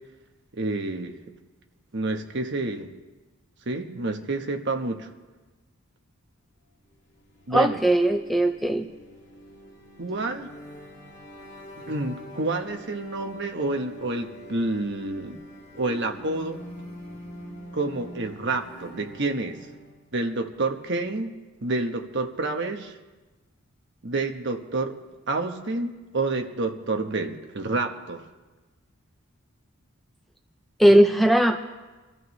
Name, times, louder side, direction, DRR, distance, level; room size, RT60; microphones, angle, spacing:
voice 1, 0.5-1.2 1.9-2.9 3.7-5.1 7.5-7.8 10.0-10.5 11.9-15.4 15.7-16.6 17.7-19.6 20.1-21.4 21.6-22.9 24.0-25.0 25.3-28.2, right 2 dB, 50° right, 5 dB, 1.2 m, -28 dB
sound 1, 7.1-20.1, left 1 dB, 50° left, 2.2 m, -45 dB
voice 2, 7.5-8.9 30.8-31.6, right 1 dB, ahead, 5 dB, 0.4 m, -19 dB
25.5 x 14.0 x 3.2 m, 1.2 s
head